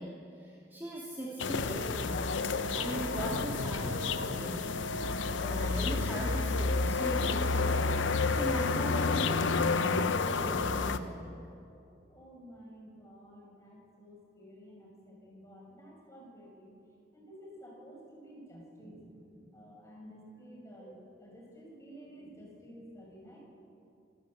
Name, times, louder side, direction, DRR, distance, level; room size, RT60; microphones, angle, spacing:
voice 1, 0.0-2.3 2.7-4.7 5.2-7.9 8.3-11.4, right 1 dB, 10° right, -5 dB, 2.4 m, -39 dB
sound 1, 1.4-11.0, left 4 dB, 85° left, 0.8 m, -30 dB
voice 2, 12.1-16.7 17.1-23.4, equal, 15° left, -2 dB, 5.9 m, -52 dB
24.5 x 14.0 x 8.7 m, 2.6 s
head